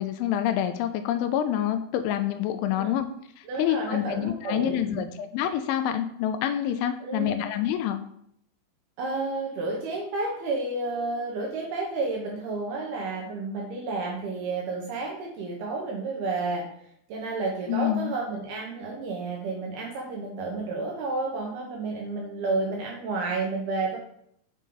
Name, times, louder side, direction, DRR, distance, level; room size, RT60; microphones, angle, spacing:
voice 1, 0.0-3.1 3.4-8.0 17.7-18.1, left 11 dB, 85° left, 8 dB, 2.9 m, -27 dB
voice 2, 3.5-5.1 7.0-7.4 9.0-16.6 17.1-24.0, right 3 dB, 70° right, -1 dB, 2.5 m, -31 dB
6.9 x 6.2 x 3.8 m, 0.69 s
omnidirectional pair, 5.6 m